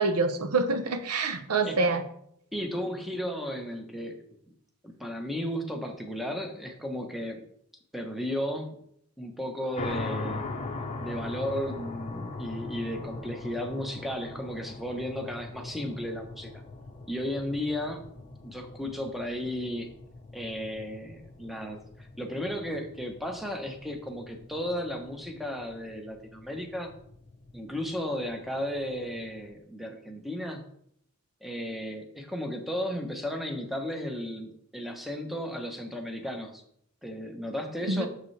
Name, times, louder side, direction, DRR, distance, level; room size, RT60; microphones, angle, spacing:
voice 1, 0.0-2.0 37.9-38.1, right 3 dB, 85° right, 9 dB, 0.8 m, -26 dB
voice 2, 2.5-4.4 4.8-7.4 7.9-8.8 9.2-10.5 11.0-16.5 17.1-18.0 18.4-19.9 20.3-26.9 27.5-30.6 31.4-36.6 37.0-38.1, equal, ahead, 3 dB, 0.9 m, -34 dB
sound 1, 9.7-29.5, left 3 dB, 30° left, 0.8 m, -41 dB
6.8 x 6.5 x 3.3 m, 0.70 s
head